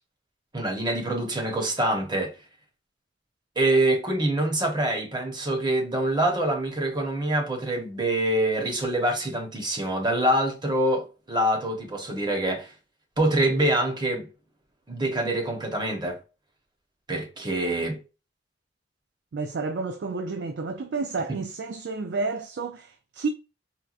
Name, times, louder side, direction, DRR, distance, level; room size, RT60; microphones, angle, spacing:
voice 1, 0.5-2.3 3.6-12.7 13.2-14.3 14.9-16.2 17.1-18.0 21.3-21.4, right 1 dB, 25° right, 1.0 m, -25 dB
voice 2, 19.3-23.3, right 4 dB, 75° right, 0.4 m, -30 dB
4.4 x 2.3 x 2.4 m
head